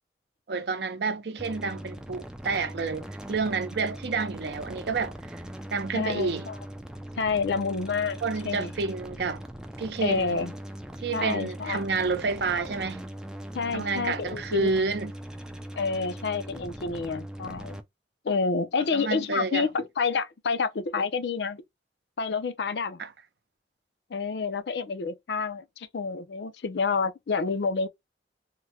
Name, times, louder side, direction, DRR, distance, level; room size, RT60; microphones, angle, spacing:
voice 1, 0.5-5.4 5.7-6.5 8.2-9.4 9.8-10.4 11.0-13.0 13.7-15.1 18.9-19.7 23.0-23.1, right 4 dB, 65° right, 0.5 m, -29 dB
sound 1, 1.4-17.8, equal, 5° right, 0.3 m, -40 dB
voice 2, 5.9-6.6 7.2-8.7 10.0-10.5 11.1-11.9 13.5-14.7 15.7-17.8 18.2-21.6 22.2-23.0 24.1-27.9, left 4 dB, 70° left, 0.5 m, -29 dB
3.6 x 2.1 x 2.8 m
head